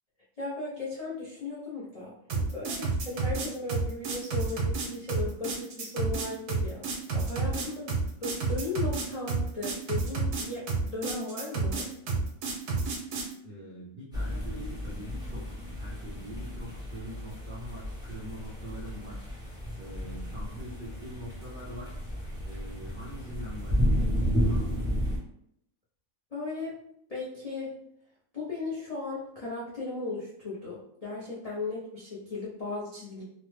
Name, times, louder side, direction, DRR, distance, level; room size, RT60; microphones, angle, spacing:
voice 1, 0.4-2.1 2.5-11.9 26.3-26.7 27.1-27.7 28.3-33.2, left 3 dB, 55° left, -7 dB, 0.4 m, -36 dB
sound 1, 2.3-13.3, right 4 dB, 85° right, 1.2 m, -30 dB
voice 2, 13.4-19.2 19.7-21.9 22.4-24.9, equal, 60° right, -7 dB, 0.5 m, -43 dB
sound 2, 14.1-25.2, equal, 5° right, 0.5 m, -32 dB
3.1 x 2.0 x 3.1 m, 0.70 s
omnidirectional pair, 1.7 m